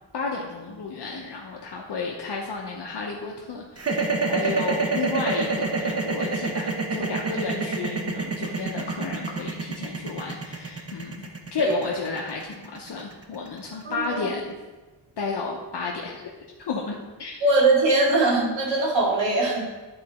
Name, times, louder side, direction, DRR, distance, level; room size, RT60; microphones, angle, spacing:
voice 1, 0.1-14.5 15.2-16.2 16.7-17.4, left 4 dB, 65° left, -1 dB, 0.9 m, -32 dB
sound 1, 3.8-13.9, right 3 dB, 35° right, 0.8 m, -27 dB
voice 2, 13.8-14.3 17.4-19.6, right 2 dB, 75° right, -4 dB, 2.3 m, -21 dB
10.5 x 3.9 x 4.2 m, 1.2 s
wide cardioid pair, 140°, 45 cm